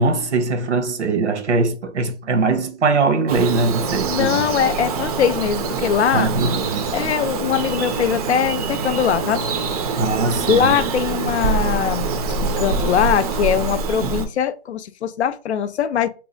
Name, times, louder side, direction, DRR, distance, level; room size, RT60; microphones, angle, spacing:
voice 1, 0.0-4.5 6.1-6.8 10.0-10.8, right 3 dB, 85° right, 1.1 m, -21 dB
Bird vocalization bird call bird song, 3.3-14.3, right 4 dB, 35° right, 0.5 m, -24 dB
voice 2, 4.1-6.3 6.9-9.4 10.5-12.1 12.4-16.1, left 8 dB, 75° left, 0.5 m, -21 dB
2.9 x 2.3 x 3.8 m
hypercardioid pair, 145°, 34 cm